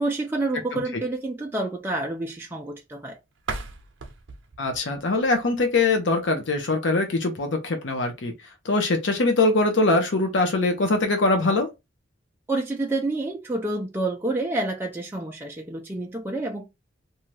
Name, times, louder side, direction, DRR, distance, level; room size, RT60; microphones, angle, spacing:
voice 1, 0.0-3.2 12.5-16.7, right 2 dB, 10° right, 0.4 m, -28 dB
sound 1, 3.4-6.2, right 3 dB, 85° right, 0.6 m, -38 dB
voice 2, 4.6-8.3 8.6-11.7, left 2 dB, 70° left, 0.7 m, -22 dB
2.7 x 2.3 x 3.1 m
head